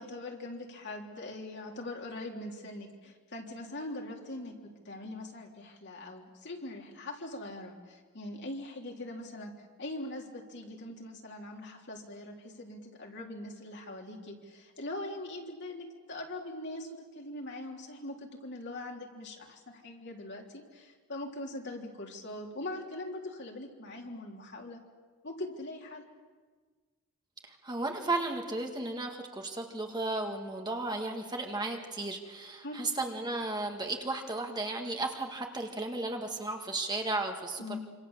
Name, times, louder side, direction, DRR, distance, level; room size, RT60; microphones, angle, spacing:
voice 1, 0.0-4.5 4.9-9.5 9.8-24.8 25.2-26.0 32.6-32.8 37.6-37.8, left 1 dB, 55° left, 1 dB, 3.6 m, -42 dB
voice 2, 27.4-37.8, right 2 dB, 20° right, 2 dB, 1.9 m, -34 dB
26.5 x 26.5 x 7.4 m, 1.5 s
head